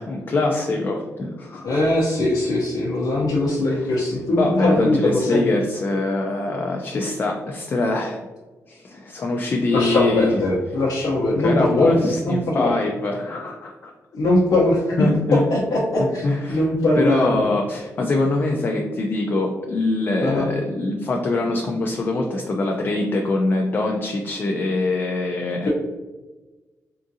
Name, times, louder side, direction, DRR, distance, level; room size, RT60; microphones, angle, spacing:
voice 1, 0.0-1.8 3.7-3.9 4.4-8.2 8.7-10.3 11.4-13.9 15.0-15.5 16.2-16.7 17.0-25.7, left 2 dB, 35° left, 1 dB, 0.3 m, -23 dB
voice 2, 1.6-5.5 9.7-11.9 12.2-12.7 14.1-15.0 15.3-17.5 20.2-20.5, left 1 dB, 90° left, -6 dB, 0.7 m, -21 dB
3.6 x 2.4 x 2.7 m, 1.2 s
wide cardioid pair, 160°, 6 cm